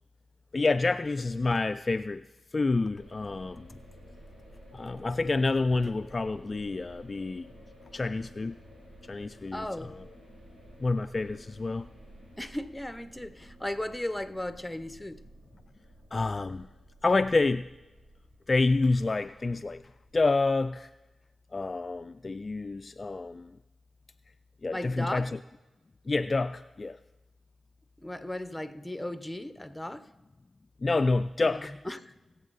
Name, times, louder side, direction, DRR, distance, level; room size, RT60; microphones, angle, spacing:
voice 1, 0.5-2.2 2.5-3.8 4.7-7.5 7.9-8.6 9.1-10.1 10.8-11.9 16.1-16.7 17.0-17.7 18.5-19.8 20.1-20.9 21.5-23.5 24.6-25.4 26.1-27.0 30.8-31.7, left 3 dB, 40° left, 0.3 m, -28 dB
sound 1, 2.9-20.4, equal, 75° right, 5.2 m, -53 dB
voice 2, 9.5-9.9 12.4-15.2 24.7-25.3 28.0-30.1 31.4-32.1, left 1 dB, 10° left, 0.8 m, -36 dB
20.0 x 7.2 x 4.0 m
supercardioid pair, 45°, 0 cm